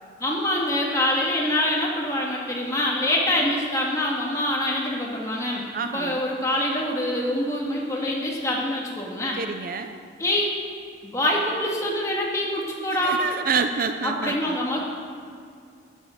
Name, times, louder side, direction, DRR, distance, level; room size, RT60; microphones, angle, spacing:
voice 1, 0.2-9.4 10.2-10.5 11.0-13.2 14.0-14.8, left 1 dB, 15° left, -3 dB, 1.8 m, -25 dB
voice 2, 5.7-6.2 9.4-10.0 13.0-14.8, right 5 dB, 45° right, 8 dB, 0.4 m, -28 dB
13.0 x 9.4 x 5.0 m, 2.3 s
head